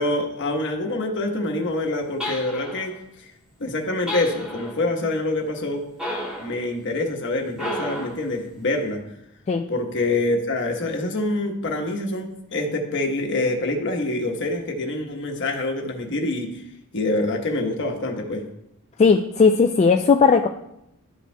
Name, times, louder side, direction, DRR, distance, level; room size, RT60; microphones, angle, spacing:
voice 1, 0.0-2.9 3.2-3.3 3.6-5.8 6.4-9.0 9.7-16.6 16.9-18.4, left 2 dB, 55° left, 2 dB, 1.1 m, -26 dB
sound 1, 2.2-2.9 4.1-4.8 6.0-6.6 7.5-8.2, left 1 dB, 5° right, 1.7 m, -31 dB
voice 2, 19.0-20.5, left 5 dB, 30° left, 3 dB, 0.3 m, -16 dB
12.0 x 5.4 x 2.2 m, 0.82 s
head